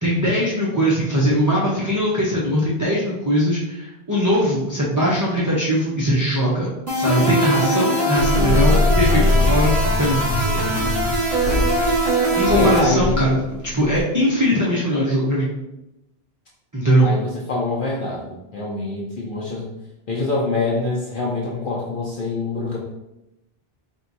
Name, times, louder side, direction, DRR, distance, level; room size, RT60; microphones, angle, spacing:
voice 1, 0.0-10.2 12.4-15.5 16.7-17.1, equal, 20° right, -6 dB, 0.6 m, -20 dB
sound 1, 6.9-12.8, right 1 dB, 60° right, 2.0 m, -21 dB
sound 2, 8.2-14.0, left 2 dB, 90° left, 0.9 m, -22 dB
voice 2, 10.4-10.9 12.6-13.4 17.0-19.7 20.1-22.8, left 3 dB, 60° left, -4 dB, 0.8 m, -25 dB
4.4 x 2.4 x 4.0 m, 0.90 s
omnidirectional pair, 1.0 m